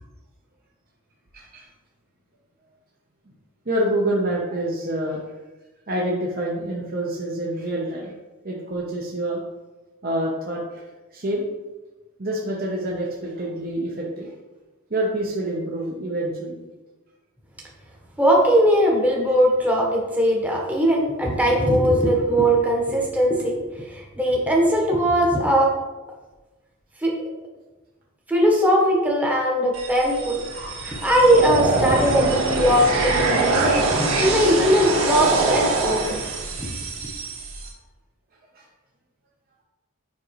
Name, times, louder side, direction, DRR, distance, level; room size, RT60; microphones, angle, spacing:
voice 1, 1.3-1.7 3.7-5.2 5.9-8.1 8.4-9.4 10.0-10.8 11.1-11.5 12.2-14.3 14.9-16.6 22.0-22.2 30.5-30.7 38.5-38.6, right 1 dB, 45° right, -3 dB, 0.8 m, -27 dB
voice 2, 18.2-23.6 23.9-25.7 27.0-27.1 28.3-30.4 30.8-36.2 36.6-36.7, equal, 5° right, -2 dB, 1.0 m, -20 dB
sound 1, 29.7-37.7, right 3 dB, 70° right, 1.5 m, -24 dB
7.3 x 5.2 x 3.1 m, 1.2 s
head